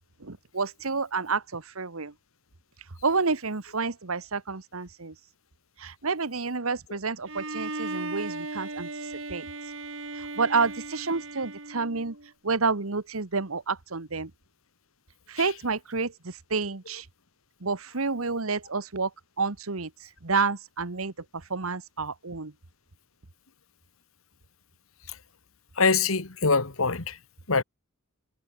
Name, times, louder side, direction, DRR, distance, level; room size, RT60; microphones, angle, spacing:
voice 1, 0.3-2.1 3.0-5.1 5.8-8.9 9.3-9.4 10.4-12.1 12.4-14.3 15.3-16.1 16.5-17.0 17.6-19.1 19.4-19.9 20.2-21.1 21.5-22.5, right 4 dB, 80° right, 1.4 m, -29 dB
Bowed string instrument, 7.3-12.3, right 2 dB, 65° right, 5.3 m, -37 dB
voice 2, 25.8-27.2 27.5-27.6, left 4 dB, 75° left, 1.9 m, -24 dB
head